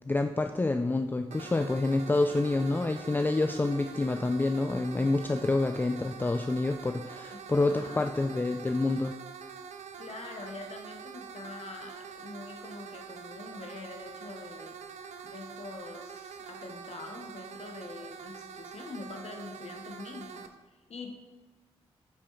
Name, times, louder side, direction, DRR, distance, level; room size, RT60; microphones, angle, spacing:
voice 1, 0.0-9.1, left 2 dB, 15° left, 6 dB, 0.3 m, -28 dB
sound 1, 1.3-20.5, right 6 dB, 80° right, 0.4 m, -45 dB
voice 2, 7.3-8.4 10.0-14.7 15.2-21.2, left 3 dB, 65° left, 3 dB, 0.8 m, -45 dB
9.7 x 4.3 x 2.4 m, 1.2 s
cardioid pair, 45°, 12 cm